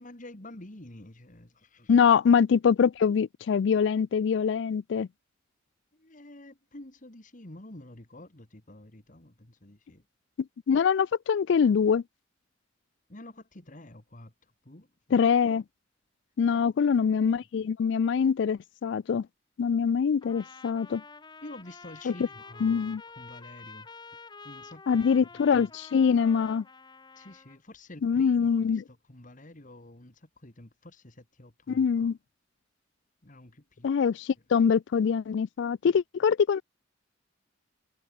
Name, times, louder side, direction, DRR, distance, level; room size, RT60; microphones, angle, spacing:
voice 1, 0.0-1.9 5.9-10.0 13.1-15.2 16.5-16.6 17.0-17.3 17.6-17.7 21.4-23.9 24.4-25.1 25.5-25.7 27.2-32.1 33.2-33.9, left 1 dB, 40° left, 2.2 m, -49 dB
voice 2, 1.9-5.1 10.7-12.0 15.1-15.6 16.4-19.3 19.6-21.0 22.1-22.2 22.6-23.0 24.9-26.6 28.0-28.8 31.7-32.2 33.8-36.6, left 6 dB, 65° left, 0.3 m, -24 dB
Trumpet, 20.2-27.6, left 4 dB, 25° left, 1.1 m, -48 dB
head